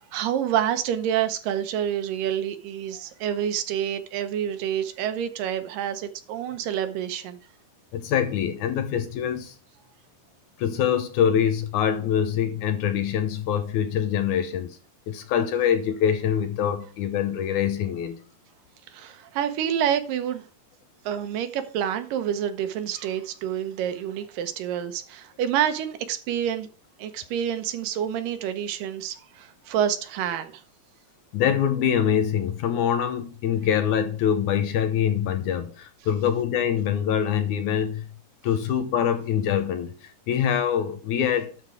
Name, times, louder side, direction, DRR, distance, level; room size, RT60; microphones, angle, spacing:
voice 1, 0.1-7.4 18.9-20.4 21.1-26.7 27.0-30.6, right 9 dB, 85° right, 2.5 m, -28 dB
voice 2, 7.9-9.6 10.6-14.8 15.1-18.2 31.3-38.1 38.4-41.5, left 9 dB, 75° left, 2.1 m, -24 dB
11.5 x 4.0 x 4.8 m
omnidirectional pair, 3.8 m